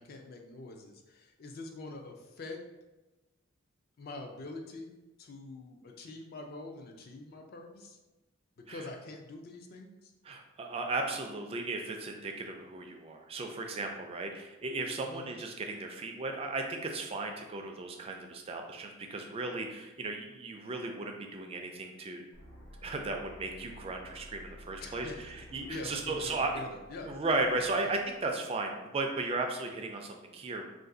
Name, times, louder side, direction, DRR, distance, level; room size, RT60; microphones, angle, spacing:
voice 1, 0.0-2.6 4.0-4.9 5.2-8.0 8.6-10.1 15.0-15.2 24.8-25.2 25.7-27.1 27.8-27.9, left 2 dB, 45° left, 3 dB, 0.4 m, -45 dB
voice 2, 10.2-22.2 22.8-26.5 27.1-30.6, right 3 dB, 30° right, 3 dB, 0.3 m, -35 dB
sound 1, 22.3-28.3, equal, 75° left, 0.8 m, -53 dB
2.5 x 2.3 x 3.7 m, 1.1 s
head